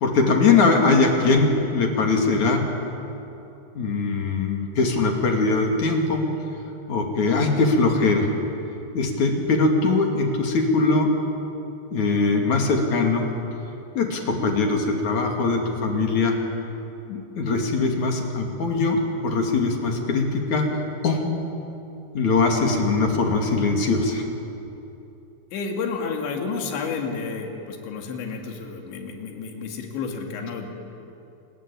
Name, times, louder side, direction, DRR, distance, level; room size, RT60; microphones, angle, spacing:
voice 1, 0.0-2.6 3.8-6.3 6.9-8.3 8.9-11.1 11.9-13.3 14.0-16.4 17.1-20.7 21.0-21.2 22.2-24.2, left 3 dB, 45° left, 2 dB, 3.5 m, -21 dB
voice 2, 25.5-30.8, left 5 dB, 85° left, 3 dB, 4.6 m, -31 dB
28.0 x 21.5 x 8.8 m, 2.9 s
omnidirectional pair, 5.1 m